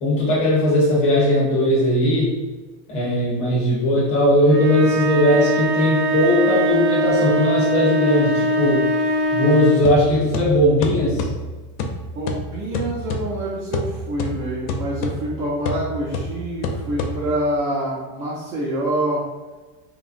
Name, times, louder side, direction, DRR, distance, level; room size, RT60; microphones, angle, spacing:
voice 1, 0.0-2.3 2.9-8.8 9.3-11.3, left 1 dB, 15° left, -6 dB, 0.4 m, -18 dB
sound 1, 4.4-9.9, equal, 35° right, 0.7 m, -21 dB
sound 2, 9.8-17.6, left 2 dB, 85° left, 0.6 m, -29 dB
voice 2, 12.2-19.2, right 1 dB, 70° right, -6 dB, 0.9 m, -26 dB
2.9 x 2.4 x 2.4 m, 1.3 s
supercardioid pair, 170°, 47 cm